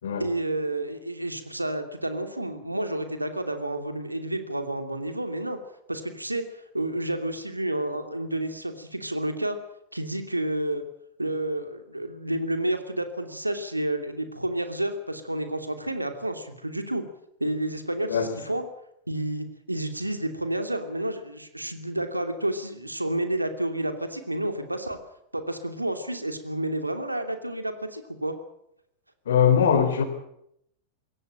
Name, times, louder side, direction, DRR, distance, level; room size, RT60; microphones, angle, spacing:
voice 1, 0.2-5.6 5.9-9.6 9.9-10.8 11.2-17.0 17.4-18.6 19.1-25.0 25.3-28.3, right 1 dB, 85° right, 2.8 m, -30 dB
voice 2, 29.3-30.0, left 7 dB, 65° left, 3.7 m, -21 dB
22.0 x 17.0 x 8.9 m
figure-of-eight pair, 90°, 0 cm